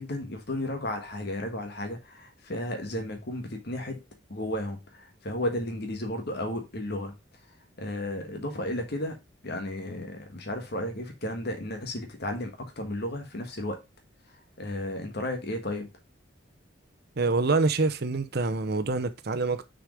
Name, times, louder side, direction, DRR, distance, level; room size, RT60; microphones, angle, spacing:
voice 1, 0.0-4.0 4.3-7.1 7.8-9.2 9.4-13.8 14.6-15.9, left 1 dB, 55° left, 1.5 m, -33 dB
voice 2, 17.2-19.7, right 3 dB, 55° right, 0.7 m, -26 dB
6.3 x 5.0 x 5.0 m
head